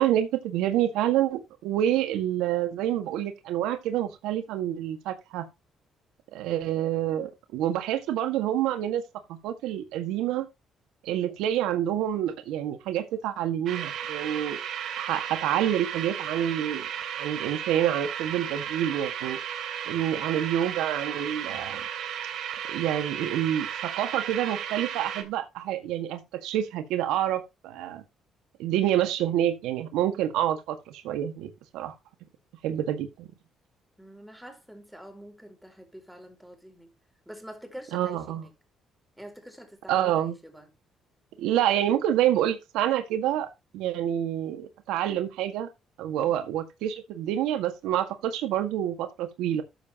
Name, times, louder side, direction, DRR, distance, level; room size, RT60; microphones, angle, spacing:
voice 1, 0.0-5.5 6.3-9.0 9.3-10.5 11.0-14.6 15.0-16.8 17.2-19.4 19.9-21.8 22.7-28.0 28.6-31.9 32.6-33.3 37.9-38.4 39.9-40.4 41.4-43.5 43.7-45.7 46.0-49.6, right 11 dB, 90° right, 1.8 m, -27 dB
sound 1, 13.7-25.2, right 9 dB, 75° right, 2.9 m, -34 dB
voice 2, 34.0-36.9 37.2-38.5 39.2-40.7, equal, ahead, 4.6 m, -46 dB
13.5 x 7.3 x 3.0 m
cardioid pair, 90°, 0 cm